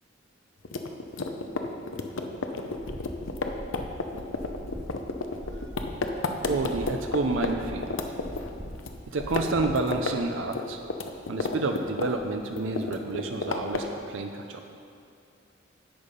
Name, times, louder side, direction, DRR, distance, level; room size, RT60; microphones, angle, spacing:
sound 1, 0.6-7.5 7.8-8.9 9.2-10.1 10.4-12.3 12.6-14.0, left 3 dB, 80° left, 0.7 m, -31 dB
sound 2, 2.7-10.2, equal, 30° right, 1.3 m, -41 dB
voice 1, 6.5-7.9 9.1-10.8 11.3-14.6, right 3 dB, 75° right, 4 dB, 0.6 m, -29 dB
10.5 x 7.3 x 5.2 m, 2.5 s
head